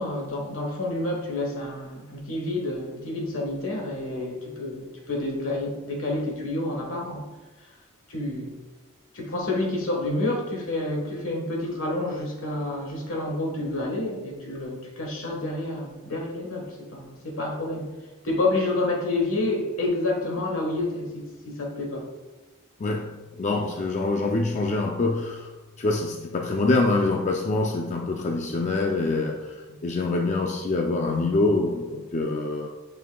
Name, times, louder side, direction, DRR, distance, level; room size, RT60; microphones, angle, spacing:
voice 1, 0.0-7.3 7.6-7.7 8.1-8.6 9.1-18.0 18.2-22.1, left 2 dB, 70° left, 0 dB, 1.4 m, -29 dB
voice 2, 22.8-25.5 25.8-32.7, left 2 dB, 35° left, 1 dB, 0.4 m, -25 dB
8.4 x 5.5 x 2.3 m, 1.2 s
head